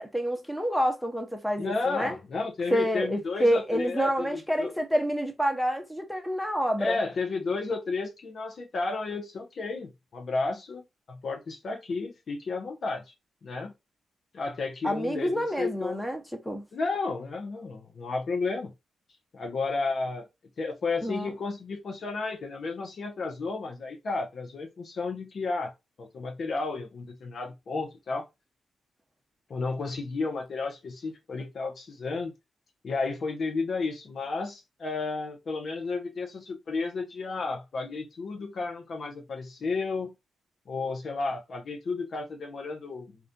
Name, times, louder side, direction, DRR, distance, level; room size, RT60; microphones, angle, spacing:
voice 1, 0.0-2.2 2.7-7.0 14.8-16.6 21.0-21.3, equal, ahead, 0.7 m, -28 dB
voice 2, 1.6-4.7 6.8-10.8 11.1-13.0 13.4-13.7 14.3-16.0 16.7-18.7 19.3-20.3 20.6-25.7 26.0-28.3 29.5-32.3 32.8-40.1 40.7-43.2, left 3 dB, 60° left, 0.6 m, -32 dB
2.4 x 2.2 x 2.5 m
supercardioid pair, 50°, 0 cm